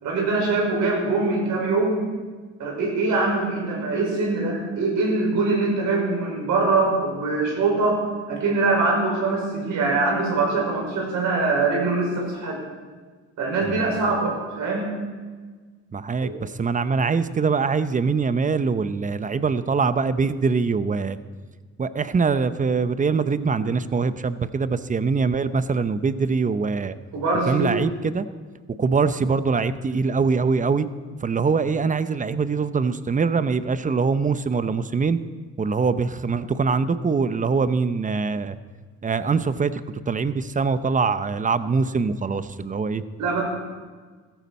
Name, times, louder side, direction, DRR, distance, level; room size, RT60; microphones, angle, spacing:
voice 1, 0.0-2.0 2.6-12.6 13.4-14.9 16.2-16.3 27.1-27.7 43.2-43.4, right 3 dB, 80° right, -2 dB, 5.4 m, -23 dB
voice 2, 13.6-14.0 15.9-21.2 21.8-26.9 27.5-28.3 28.8-30.9 31.2-35.2 35.6-38.6 39.0-39.8 40.1-43.0, right 5 dB, 25° right, 13 dB, 0.7 m, -23 dB
15.0 x 14.0 x 4.2 m, 1.5 s
cardioid pair, 90°, 30 cm